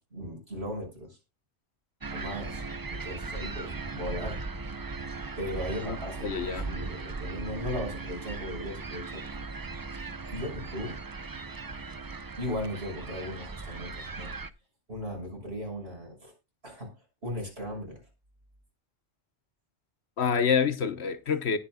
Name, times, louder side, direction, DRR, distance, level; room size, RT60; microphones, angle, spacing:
voice 1, 0.1-1.2 2.1-2.6 2.9-4.4 5.4-9.2 10.3-11.0 12.4-14.4 14.9-16.3 16.6-16.9 17.2-18.0, equal, 65° right, 6.4 m, -37 dB
sound 1, 2.0-14.5, right 3 dB, 30° right, 0.4 m, -38 dB
voice 2, 6.2-6.7 20.2-21.6, left 6 dB, 70° left, 1.2 m, -27 dB
19.5 x 7.9 x 2.3 m
omnidirectional pair, 1.1 m